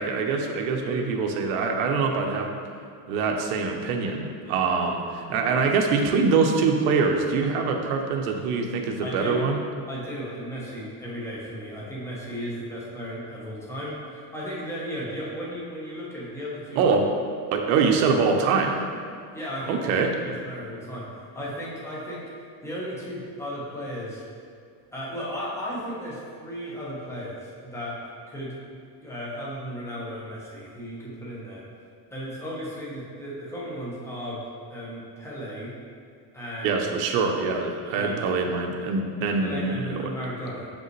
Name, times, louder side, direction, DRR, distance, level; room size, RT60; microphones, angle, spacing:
voice 1, 0.0-2.6 3.1-9.6 16.8-17.1 17.5-18.9 19.7-20.1 36.6-40.1, right 4 dB, 70° right, 3 dB, 0.8 m, -24 dB
voice 2, 0.8-1.1 5.4-5.7 9.0-9.4 9.9-16.8 19.3-19.9 20.2-24.2 24.9-28.0 28.3-31.7 32.1-35.8 36.3-36.8 37.9-38.2 39.3-40.7, equal, 5° left, -6 dB, 1.1 m, -35 dB
5.9 x 5.3 x 3.2 m, 2.2 s
supercardioid pair, 150°, 45 cm